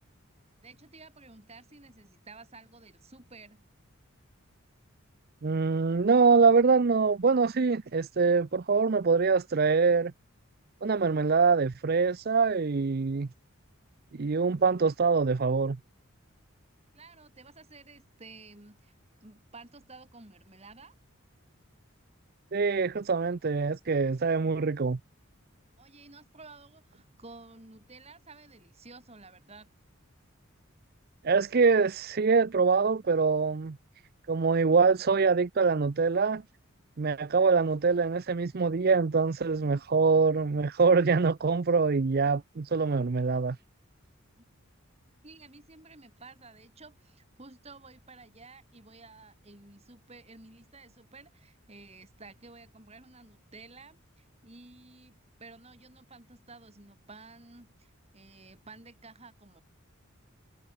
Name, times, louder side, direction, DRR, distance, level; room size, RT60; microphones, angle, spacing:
voice 1, 0.6-3.6 16.9-18.9 19.2-20.9 25.8-29.7 44.4-44.5 45.2-59.6, right 3 dB, 30° right, 3.1 m, -52 dB
voice 2, 5.4-10.1 10.8-13.3 14.1-15.8 22.5-25.0 31.2-33.8 34.3-36.4 37.0-43.6, right 4 dB, 45° right, 0.5 m, -24 dB
head